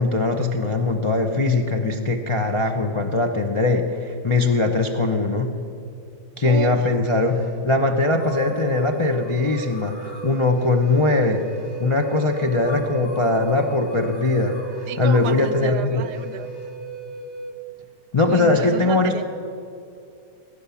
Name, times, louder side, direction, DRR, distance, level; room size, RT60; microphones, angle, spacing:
voice 1, 0.0-5.5 6.4-7.4 7.6-11.5 11.8-16.0 18.1-19.2, left 3 dB, 35° left, 2 dB, 0.4 m, -21 dB
voice 2, 6.4-6.9 14.9-16.5 18.2-19.2, right 9 dB, 75° right, 14 dB, 1.1 m, -31 dB
sound 1, 7.0-7.6 8.1-16.7, left 3 dB, 70° left, 3.1 m, -46 dB
Wind instrument woodwind instrument, 8.3-17.6, right 2 dB, 15° left, 1.6 m, -37 dB
19.0 x 9.8 x 7.0 m, 2.6 s
omnidirectional pair, 1.8 m